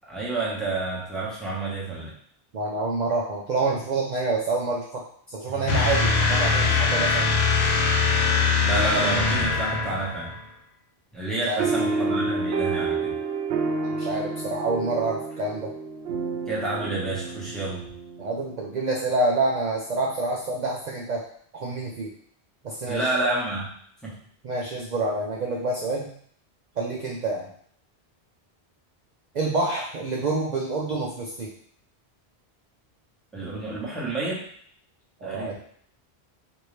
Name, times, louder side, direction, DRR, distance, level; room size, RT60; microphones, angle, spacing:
voice 1, 0.1-2.1 5.5-5.8 8.6-10.3 11.1-13.1 16.5-17.8 22.9-23.7 24.0-24.1 33.3-34.4 35.2-35.5, right 2 dB, ahead, -7 dB, 1.1 m, -29 dB
voice 2, 2.5-5.0 5.3-7.3 11.5-11.7 14.0-15.7 18.2-21.2 21.5-22.1 22.6-23.1 24.4-26.1 26.8-27.5 29.3-31.5 35.2-35.5, right 2 dB, 50° right, -3 dB, 0.6 m, -27 dB
sound 1, 5.7-10.4, left 4 dB, 85° left, 0.9 m, -22 dB
sound 2, 11.6-18.5, right 4 dB, 90° right, 0.9 m, -29 dB
4.6 x 2.6 x 3.2 m, 0.62 s
omnidirectional pair, 1.1 m